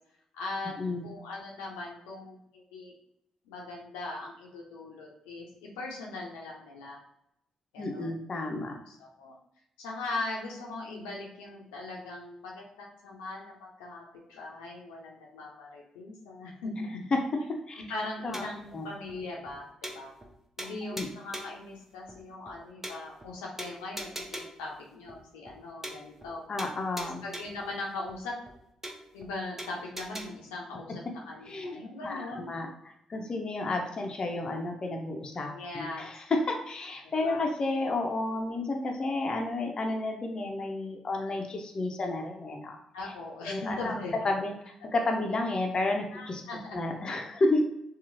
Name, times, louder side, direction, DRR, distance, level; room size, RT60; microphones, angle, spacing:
voice 1, 0.3-0.7 1.0-2.9 3.4-7.0 7.7-8.1 8.9-9.4 9.8-14.0 14.3-17.0 17.9-20.1 20.6-26.4 27.0-28.4 29.1-32.5 35.4-36.0 37.0-37.4 42.9-44.3 46.1-46.9, left 2 dB, 90° left, -2 dB, 0.5 m, -40 dB
voice 2, 7.8-8.7 17.7-17.8 18.2-18.4 18.7-18.8 20.9-21.1 26.5-27.2 31.5-31.8 32.0-32.7 33.1-42.8 43.4-44.5 44.9-46.4 46.7-47.6, left 2 dB, 45° left, 2 dB, 0.6 m, -31 dB
sound 1, 18.3-18.7 19.1-19.2 19.5-19.6 19.8-20.3 20.6-21.6 22.1-22.2 22.5-22.6 22.8-23.3 23.6-24.7 25.1-25.2 25.5-25.6 25.8-26.3 26.6-27.7 28.1-28.2 28.5-28.6 28.8-29.3 29.6-30.2, right 1 dB, 15° right, 0.6 m, -41 dB
2.9 x 2.4 x 2.5 m, 0.77 s
hypercardioid pair, 45°, 2 cm